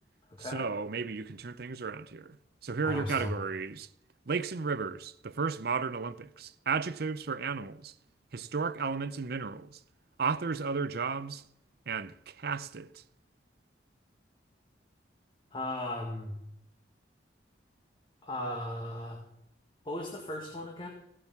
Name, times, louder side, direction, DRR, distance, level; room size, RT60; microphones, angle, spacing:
voice 1, 0.4-2.4 2.6-3.9 4.3-7.9 8.3-9.8 10.2-11.4 11.9-13.0, right 5 dB, 60° right, 0.6 m, -34 dB
voice 2, 2.8-3.3 15.5-16.4 18.2-19.2 19.9-20.9, left 1 dB, 30° left, 1.8 m, -36 dB
16.5 x 7.6 x 7.0 m
head